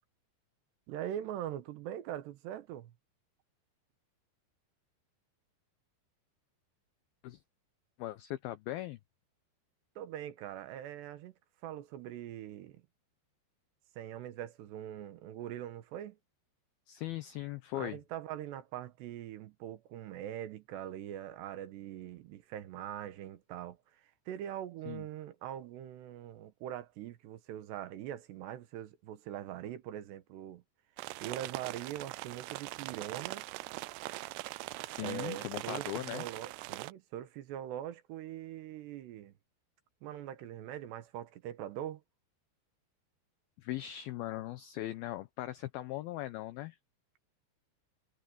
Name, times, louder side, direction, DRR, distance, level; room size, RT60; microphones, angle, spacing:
voice 1, 0.9-2.9 10.0-11.3 11.6-12.8 14.0-16.2 17.7-30.6 31.2-33.5 35.0-39.3 40.0-42.0, right 11 dB, 70° right, 3.2 m, -42 dB
voice 2, 8.0-9.0 16.9-18.0 24.9-25.1 34.9-36.3 43.6-46.8, left 15 dB, 85° left, 2.1 m, -39 dB
sound 1, 31.0-36.9, right 20 dB, 90° right, 2.3 m, -42 dB
omnidirectional pair, 5.3 m